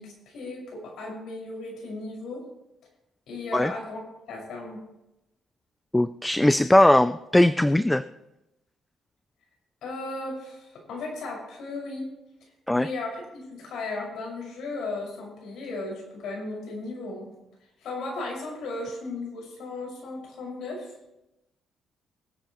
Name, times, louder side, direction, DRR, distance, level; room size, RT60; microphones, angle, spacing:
voice 1, 0.0-2.5 3.3-4.8 9.8-12.1 12.7-17.3 17.8-20.9, left 2 dB, 75° left, -1 dB, 5.9 m, -35 dB
voice 2, 5.9-8.0 12.7-12.9, left 1 dB, 10° left, 12 dB, 0.5 m, -19 dB
23.0 x 9.0 x 3.1 m, 0.92 s
cardioid pair, 90°, 0 cm